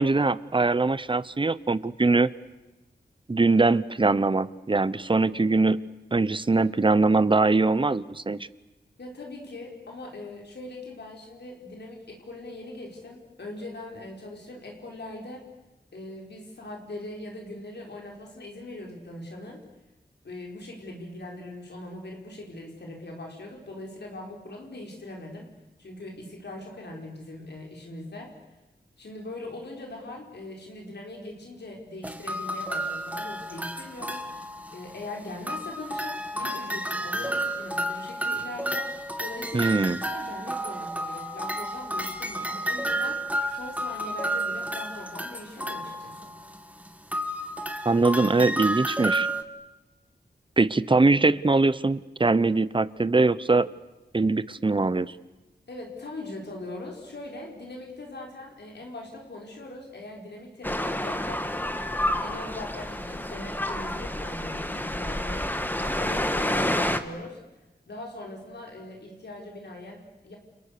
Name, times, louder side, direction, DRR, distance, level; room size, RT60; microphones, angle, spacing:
voice 1, 0.0-2.3 3.3-5.8 6.1-8.5 39.5-40.0 47.8-49.3 50.6-53.7 54.1-55.1, right 3 dB, 30° right, 17 dB, 0.9 m, -22 dB
voice 2, 9.0-15.5 15.9-19.6 20.2-25.5 25.8-28.3 29.0-34.2 34.7-38.9 39.2-39.8 40.1-43.2 43.5-46.3 55.7-61.4 62.0-65.5 65.8-67.4 67.9-70.4, left 2 dB, 75° left, 0 dB, 5.1 m, -41 dB
sound 1, 32.0-35.1 35.5-49.4, right 1 dB, 10° right, 2.0 m, -31 dB
sound 2, 60.6-67.0, left 1 dB, 10° left, 1.6 m, -29 dB
30.0 x 29.0 x 6.8 m, 1.0 s
wide cardioid pair, 105°, 18 cm